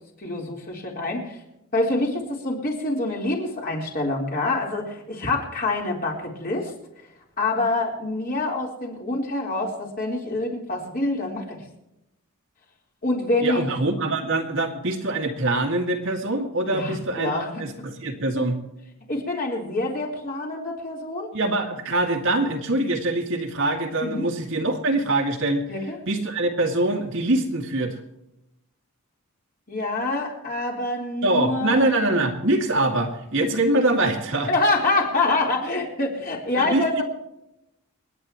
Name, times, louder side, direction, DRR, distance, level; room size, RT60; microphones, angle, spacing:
voice 1, 0.2-1.4 1.7-6.7 7.4-11.6 13.0-13.7 16.7-17.5 19.1-21.3 24.0-24.3 25.7-26.0 29.7-31.8 34.5-37.0, left 2 dB, 40° left, -2 dB, 3.9 m, -26 dB
voice 2, 13.4-17.3 17.6-18.6 21.3-25.6 26.1-28.0 31.2-34.5 36.6-37.0, right 2 dB, 60° right, 2 dB, 2.1 m, -24 dB
29.0 x 9.8 x 3.0 m, 0.86 s
head